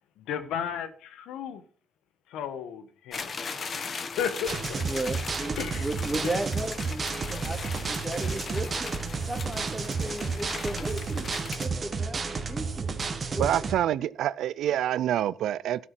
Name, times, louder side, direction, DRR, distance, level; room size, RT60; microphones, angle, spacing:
voice 1, 0.2-1.6 2.3-3.3 3.7-4.6 5.6-5.9 6.2-6.3, left 8 dB, 85° left, 1.3 m, -34 dB
sound 1, 3.1-11.7, left 5 dB, 45° left, 1.5 m, -38 dB
sound 2, 4.5-13.7, right 4 dB, 40° right, 1.7 m, -32 dB
voice 2, 4.8-7.6 7.9-9.0 9.3-11.3 11.6-12.9 13.3-13.5 14.0-14.1, right 2 dB, 10° right, 2.5 m, -35 dB
voice 3, 13.4-15.9, right 11 dB, 80° right, 0.4 m, -27 dB
12.5 x 6.5 x 6.0 m
cardioid pair, 90°, 0 cm